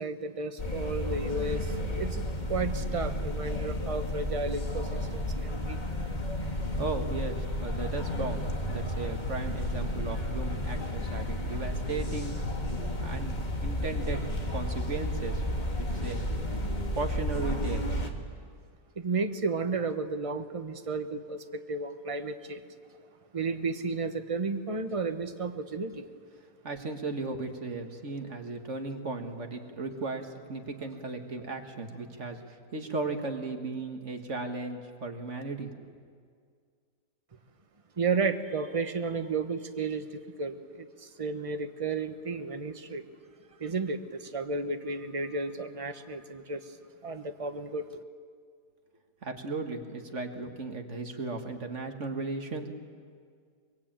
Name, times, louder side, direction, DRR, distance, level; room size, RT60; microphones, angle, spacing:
voice 1, 0.0-2.2 2.5-5.8 19.0-22.6 23.3-26.0 38.0-43.0 43.6-46.8 47.0-47.9, right 4 dB, 25° right, 8 dB, 0.9 m, -33 dB
sound 1, 0.6-18.1, left 1 dB, 25° left, 1.9 m, -32 dB
voice 2, 6.8-12.3 13.0-14.2 14.5-15.4 15.8-16.2 16.9-17.9 26.6-35.7 49.2-52.7, right 3 dB, 45° right, 5 dB, 2.0 m, -36 dB
23.5 x 22.0 x 8.9 m, 2.1 s
omnidirectional pair, 1.8 m